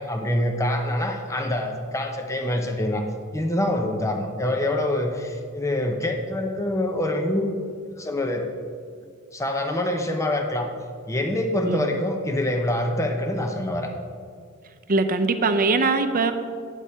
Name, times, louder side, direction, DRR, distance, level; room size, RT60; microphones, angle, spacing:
voice 1, 0.0-3.0 3.3-7.5 8.0-8.5 9.3-10.7 11.1-13.9, left 1 dB, 15° left, 3 dB, 0.7 m, -25 dB
voice 2, 11.6-12.0 14.9-16.3, right 3 dB, 40° right, 8 dB, 0.7 m, -22 dB
9.9 x 8.3 x 4.4 m, 2.2 s
head